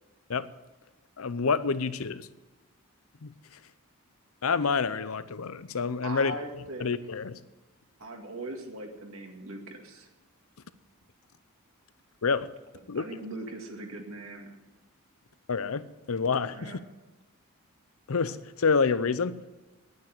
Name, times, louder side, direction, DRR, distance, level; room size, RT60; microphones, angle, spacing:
voice 1, 1.2-2.3 3.2-3.3 4.4-6.3 6.8-7.4 12.2-12.5 12.9-13.0 15.5-16.8 18.1-19.4, left 5 dB, 70° left, 15 dB, 0.6 m, -28 dB
voice 2, 6.0-6.9 8.0-10.1 12.9-14.6 16.5-16.8, right 1 dB, 65° right, 2 dB, 2.1 m, -40 dB
10.5 x 9.3 x 8.9 m, 1.1 s
head